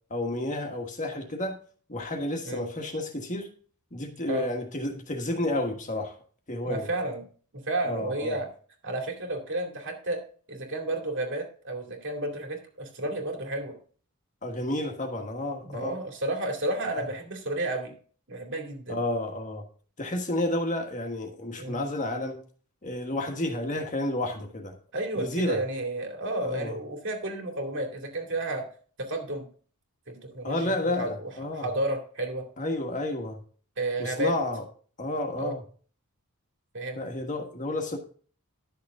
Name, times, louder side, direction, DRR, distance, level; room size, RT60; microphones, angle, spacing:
voice 1, 0.1-1.6 1.9-3.5 3.9-6.1 6.5-6.9 7.8-8.4 14.4-16.0 16.9-17.0 18.9-19.6 20.0-22.4 22.8-24.7 25.1-25.6 26.4-26.8 30.4-31.7 32.6-33.4 34.0-34.6 35.0-35.6 36.9-38.0, left 1 dB, 35° left, 4 dB, 1.5 m, -31 dB
voice 2, 6.6-7.2 7.5-8.5 8.8-10.2 10.5-13.7 15.6-17.9 18.3-19.0 21.6-21.8 24.9-28.6 29.0-29.5 30.1-31.3 31.6-32.4 33.8-34.3 35.4-35.5 36.7-37.0, right 1 dB, 55° right, 3 dB, 2.5 m, -31 dB
11.5 x 6.7 x 3.7 m, 0.42 s
head